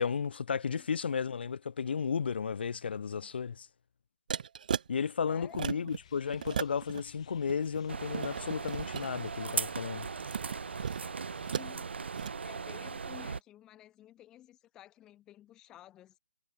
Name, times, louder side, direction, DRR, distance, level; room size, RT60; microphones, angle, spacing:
voice 1, 0.0-3.7 4.9-10.1, left 6 dB, 70° left, 0.4 m, -33 dB
sound 1, 4.3-4.9 5.4-6.0 6.3-7.0 7.4-9.1 10.0-11.7 12.1-12.3, right 7 dB, 50° right, 1.2 m, -36 dB
voice 2, 5.3-5.9 11.2-16.2, left 13 dB, 10° left, 0.9 m, -54 dB
sound 2, 5.9-11.5, left 10 dB, 35° left, 4.6 m, -59 dB
sound 3, 7.9-13.4, right 5 dB, 80° right, 0.8 m, -38 dB
hypercardioid pair, 170°, 6 cm